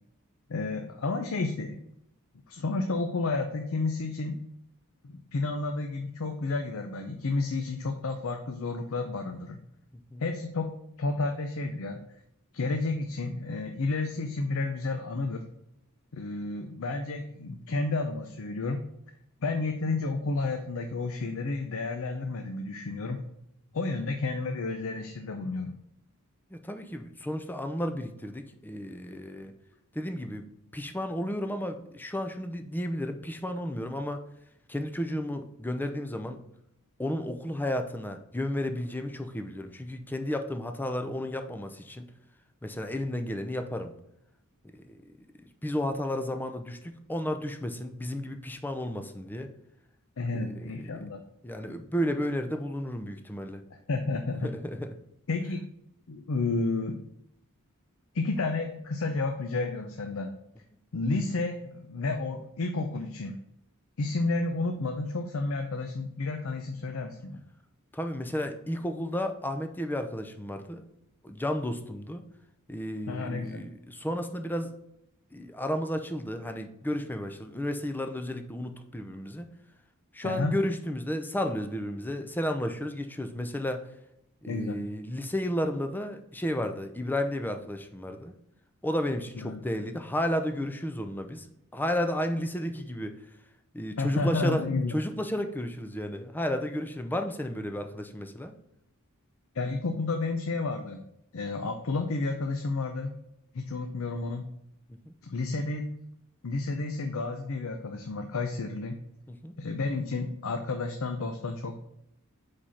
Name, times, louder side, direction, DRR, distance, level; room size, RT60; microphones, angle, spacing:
voice 1, 0.5-1.8 2.5-4.4 5.0-9.6 10.2-10.7 11.0-12.0 12.5-15.4 16.1-18.9 19.4-23.2 23.7-25.7 50.2-51.2 53.7-54.5 55.3-55.7 56.1-57.0 58.1-60.3 60.9-63.4 64.0-67.4 73.1-73.6 80.2-80.5 84.5-84.8 89.4-89.6 94.0-95.0 99.5-101.0 101.3-103.2 103.5-104.5 105.2-105.9 106.4-109.0 109.6-111.8, left 3 dB, 65° left, 5 dB, 0.6 m, -31 dB
voice 2, 26.5-29.5 29.9-30.4 30.7-34.2 34.7-36.4 37.0-42.1 42.6-43.9 44.7-45.0 45.6-49.5 50.3-50.9 51.4-53.6 54.4-54.9 67.9-70.8 71.2-72.2 72.7-74.7 75.3-79.5 80.1-83.9 84.4-88.3 88.8-91.5 91.7-93.2 93.7-98.5 105.1-105.2 109.3-109.5, left 1 dB, 10° left, 7 dB, 0.5 m, -32 dB
5.0 x 4.3 x 5.6 m, 0.79 s
head